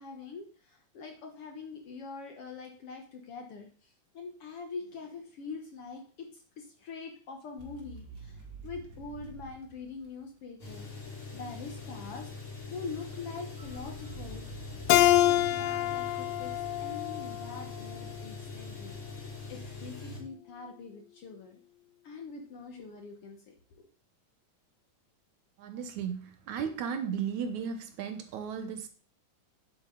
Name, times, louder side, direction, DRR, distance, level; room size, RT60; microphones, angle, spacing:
voice 1, 0.0-12.3 12.7-14.5 14.9-16.5 16.8-21.6 22.0-23.9, left 4 dB, 60° left, 3 dB, 1.7 m, -44 dB
sound 1, 7.6-10.6 13.6-17.0, right 2 dB, 40° right, 2.6 m, -48 dB
sound 2, 10.6-20.2, left 4 dB, 40° left, 3.6 m, -43 dB
Keyboard (musical), 14.9-18.1, left 13 dB, 85° left, 1.4 m, -26 dB
voice 2, 25.6-28.9, right 7 dB, 70° right, 8 dB, 2.3 m, -35 dB
9.7 x 7.9 x 3.9 m, 0.40 s
omnidirectional pair, 3.6 m